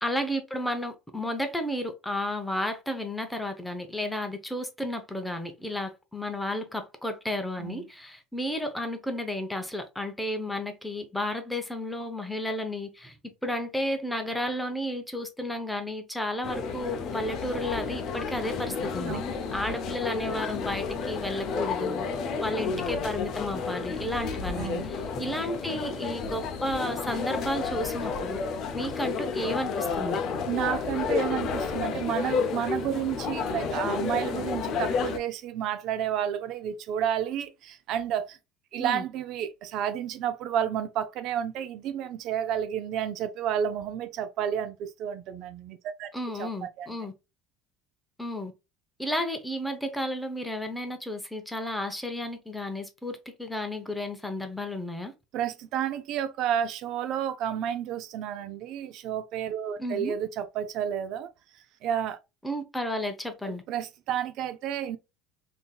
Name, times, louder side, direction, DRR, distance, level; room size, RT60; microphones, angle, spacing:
voice 1, 0.0-13.2 13.4-19.2 19.5-22.1 22.4-28.4 28.7-30.2 38.8-39.0 46.1-47.1 48.2-48.5 49.0-55.1 59.8-60.1 62.4-63.6, left 1 dB, 5° left, 0.6 m, -32 dB
sound 1, 16.4-35.2, left 5 dB, 50° left, 0.5 m, -31 dB
voice 2, 24.6-24.9 30.5-38.4 38.7-46.1 46.4-46.5 46.8-46.9 55.3-61.3 61.8-62.2 63.5-65.0, right 9 dB, 60° right, 0.4 m, -31 dB
3.6 x 2.7 x 2.3 m
supercardioid pair, 120°, 0 cm